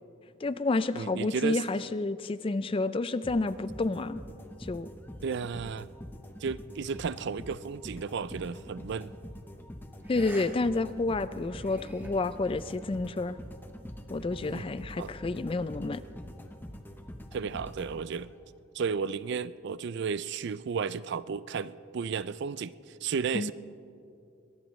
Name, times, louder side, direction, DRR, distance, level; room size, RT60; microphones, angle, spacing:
voice 1, 0.4-4.2 4.6-4.9 10.1-13.4 14.1-16.0 23.3-23.5, left 3 dB, 25° left, 14 dB, 0.3 m, -30 dB
voice 2, 0.9-1.6 5.2-5.9 6.4-9.1 14.4-14.7 15.0-15.1 17.3-18.3 18.7-23.5, right 6 dB, 55° right, 17 dB, 0.4 m, -33 dB
sound 1, 3.2-18.5, equal, 10° left, 0.8 m, -45 dB
sound 2, 8.4-8.7 10.0-10.5 10.8-10.9 11.4-12.1, right 1 dB, 10° right, 1.9 m, -47 dB
22.0 x 18.5 x 3.2 m, 2.5 s
head